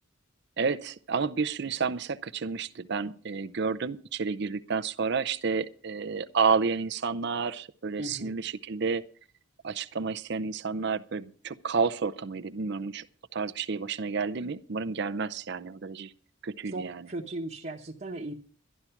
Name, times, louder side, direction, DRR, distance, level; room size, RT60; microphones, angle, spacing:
voice 1, 0.6-9.0 9.6-13.1 13.3-16.1 16.4-17.1, right 5 dB, 55° right, 11 dB, 0.6 m, -30 dB
voice 2, 8.0-8.4 16.7-18.3, right 2 dB, 35° right, -1 dB, 1.1 m, -37 dB
12.0 x 11.5 x 5.8 m, 0.43 s
head